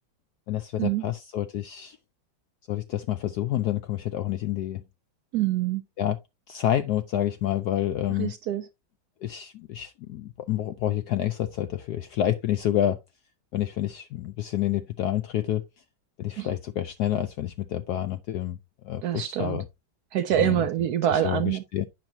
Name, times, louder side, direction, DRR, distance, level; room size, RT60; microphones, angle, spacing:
voice 1, 0.5-2.0 2.7-4.8 6.0-6.2 6.5-8.3 9.2-13.0 13.5-15.6 16.2-18.6 18.8-19.6 20.3-20.6 21.1-21.8, left 12 dB, 75° left, 0.9 m, -28 dB
voice 2, 5.3-5.8 8.2-8.6 16.4-16.5 19.0-19.6 20.1-21.6, right 12 dB, 85° right, 0.8 m, -25 dB
9.0 x 5.9 x 2.7 m
omnidirectional pair, 2.2 m